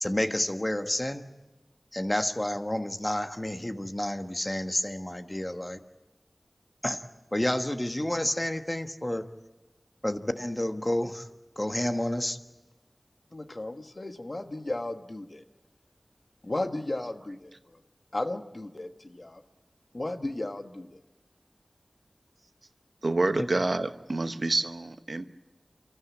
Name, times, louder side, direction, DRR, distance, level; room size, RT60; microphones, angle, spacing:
voice 1, 0.0-1.2 1.9-5.8 6.8-7.0 7.3-9.3 10.0-11.2 11.6-12.4, left 1 dB, 25° left, 7 dB, 1.3 m, -30 dB
voice 2, 13.3-15.4 16.4-17.8 18.1-19.4 19.9-21.0, left 2 dB, 50° left, 7 dB, 1.4 m, -35 dB
voice 3, 23.0-25.3, right 2 dB, 70° right, 9 dB, 1.0 m, -28 dB
29.5 x 13.5 x 8.4 m, 1.2 s
wide cardioid pair, 50°, 0 cm